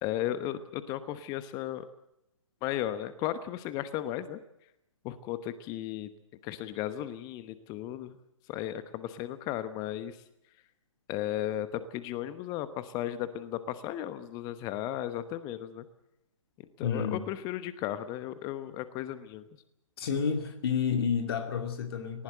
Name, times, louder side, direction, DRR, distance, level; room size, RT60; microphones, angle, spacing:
voice 1, 0.0-1.8 2.6-4.4 5.0-6.1 6.4-8.2 8.5-10.2 11.1-15.8 16.8-19.4, left 12 dB, 25° left, 13 dB, 1.0 m, -35 dB
voice 2, 16.8-17.2 20.0-22.2, left 6 dB, 50° left, 6 dB, 2.6 m, -30 dB
19.5 x 19.0 x 7.8 m, 0.83 s
figure-of-eight pair, 125°, 17 cm